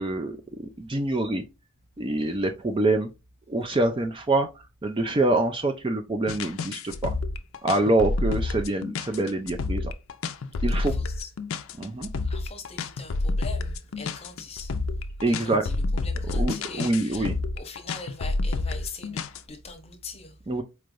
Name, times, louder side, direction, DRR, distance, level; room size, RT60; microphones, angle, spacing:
voice 1, 0.0-1.4 2.0-3.1 3.5-4.5 4.8-7.1 7.6-9.9 10.6-10.9 11.8-12.1 15.2-15.7 16.2-17.3 20.5-20.6, right 2 dB, 25° right, 0.4 m, -25 dB
sound 1, 6.3-19.4, left 3 dB, 65° left, 0.4 m, -29 dB
voice 2, 10.8-11.3 12.3-14.7 15.3-15.7 16.0-17.3 17.6-19.2 19.5-20.3, left 3 dB, 25° left, 0.8 m, -41 dB
4.5 x 3.2 x 2.5 m
head